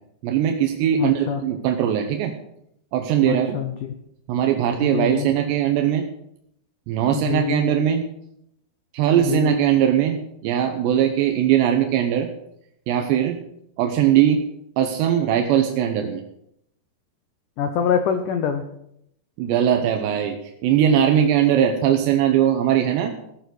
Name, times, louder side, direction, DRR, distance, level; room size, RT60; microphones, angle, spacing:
voice 1, 0.2-2.3 2.9-3.6 4.3-6.0 6.9-8.1 8.9-12.3 12.9-13.4 13.8-14.4 14.8-16.2 19.4-20.4 20.6-23.1, right 10 dB, 85° right, 5 dB, 3.2 m, -20 dB
voice 2, 1.0-1.4 3.2-3.9 4.8-5.3 7.1-7.6 9.2-9.5 17.6-18.6, left 8 dB, 80° left, 7 dB, 1.8 m, -25 dB
17.0 x 6.9 x 6.3 m, 0.76 s
omnidirectional pair, 4.8 m